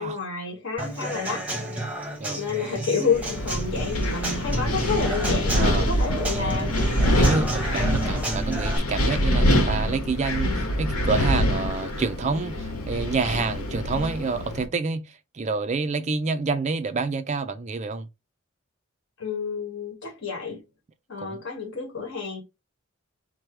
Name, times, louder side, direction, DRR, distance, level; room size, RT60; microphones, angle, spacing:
voice 1, 0.0-1.5 2.3-6.8 19.2-20.6 21.1-22.4, left 5 dB, 55° left, 1.8 m, -29 dB
Human voice / Acoustic guitar / Drum, 0.8-8.8, right 1 dB, 5° right, 0.9 m, -32 dB
Wind, 3.1-14.6, equal, 85° left, 1.1 m, -25 dB
sound 1, 3.5-9.9, equal, 30° left, 0.8 m, -36 dB
voice 2, 5.5-5.9 6.3-6.8 7.2-18.1 21.2-21.4, right 4 dB, 30° right, 0.4 m, -28 dB
4.6 x 2.2 x 4.5 m
head